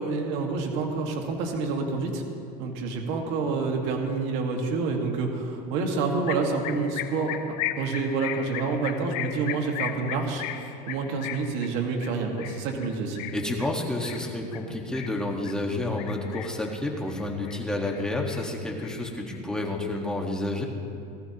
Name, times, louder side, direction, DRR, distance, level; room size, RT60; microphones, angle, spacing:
voice 1, 0.0-2.2 2.6-13.2, right 4 dB, 60° right, 2 dB, 1.7 m, -28 dB
sound 1, 6.3-15.6 16.0-16.7 17.1-18.0 18.3-19.6, left 13 dB, 75° left, 0.8 m, -37 dB
voice 2, 13.3-20.7, left 2 dB, 5° left, 0 dB, 1.5 m, -30 dB
18.5 x 13.5 x 2.9 m, 2.5 s
supercardioid pair, 130°, 21 cm